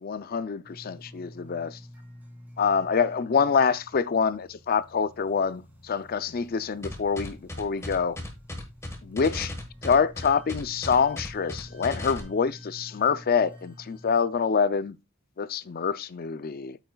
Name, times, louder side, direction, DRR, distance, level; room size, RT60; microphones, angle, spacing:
voice 1, 0.0-1.8 2.6-8.2 9.0-9.5 9.8-15.0 15.4-16.8, left 6 dB, 40° left, 0.4 m, -26 dB
sound 1, 0.6-14.2, left 1 dB, 10° right, 2.2 m, -49 dB
sound 2, 6.8-12.2, left 1 dB, 10° left, 1.4 m, -36 dB
8.9 x 7.8 x 2.3 m
head